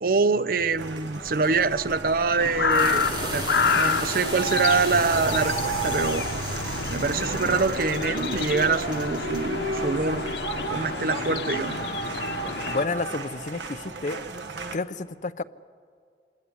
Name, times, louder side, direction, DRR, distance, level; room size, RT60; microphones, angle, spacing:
voice 1, 0.0-3.4 3.8-6.2 6.9-10.3 10.7-11.8, right 4 dB, 55° right, 15 dB, 0.6 m, -25 dB
sound 1, 0.5-10.6, right 1 dB, 25° right, 2.5 m, -36 dB
sound 2, 0.8-14.8, right 3 dB, 90° right, 1.4 m, -34 dB
sound 3, 2.4-12.9, left 5 dB, 80° left, 1.2 m, -29 dB
voice 2, 12.6-14.2 14.7-15.4, left 3 dB, 45° left, 12 dB, 0.6 m, -30 dB
27.0 x 18.0 x 9.7 m, 2.2 s
head